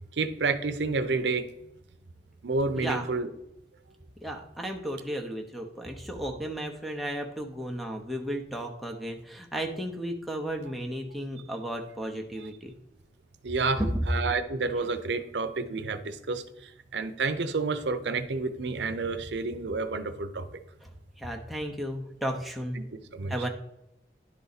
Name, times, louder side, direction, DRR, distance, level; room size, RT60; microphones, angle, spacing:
voice 1, 0.1-1.4 2.4-3.3 12.4-12.5 13.4-13.8 14.1-20.5 22.7-23.3, right 3 dB, 85° right, 10 dB, 0.6 m, -30 dB
voice 2, 2.8-3.1 4.2-12.7 13.8-13.9 20.8-20.9 21.2-22.8 23.3-23.5, equal, ahead, 0 dB, 0.7 m, -34 dB
10.5 x 4.0 x 4.0 m, 0.85 s
head